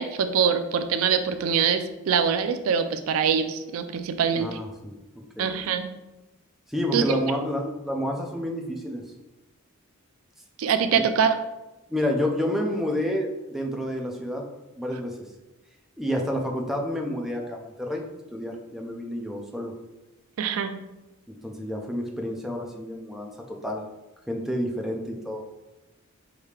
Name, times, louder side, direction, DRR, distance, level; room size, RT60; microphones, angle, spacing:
voice 1, 0.0-4.5 5.4-5.9 6.9-7.2 10.6-11.3 20.4-20.8, right 7 dB, 75° right, 10 dB, 0.4 m, -24 dB
voice 2, 4.3-4.9 5.4-5.6 6.7-9.0 10.9-11.0 11.9-14.5 14.8-15.2 16.0-18.0 18.3-19.7 21.4-23.8 24.3-25.4, equal, ahead, 1 dB, 0.5 m, -29 dB
5.0 x 2.7 x 3.2 m, 1.0 s
head